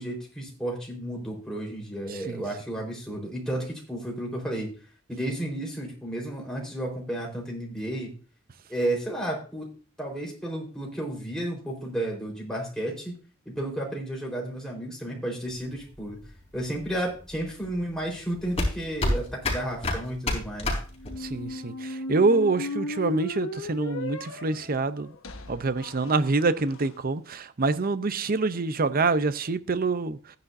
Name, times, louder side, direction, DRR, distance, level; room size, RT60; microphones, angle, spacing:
voice 1, 0.0-4.7 5.1-8.1 8.7-9.7 10.0-13.2 13.5-16.2 16.5-20.8, right 1 dB, 5° left, 4.2 m, -32 dB
sound 1, 15.5-21.5, left 1 dB, 30° left, 3.8 m, -30 dB
sound 2, 21.0-26.9, left 2 dB, 80° left, 1.2 m, -36 dB
voice 2, 21.2-25.1 25.5-30.2, right 3 dB, 45° right, 0.7 m, -26 dB
14.5 x 9.9 x 2.7 m
head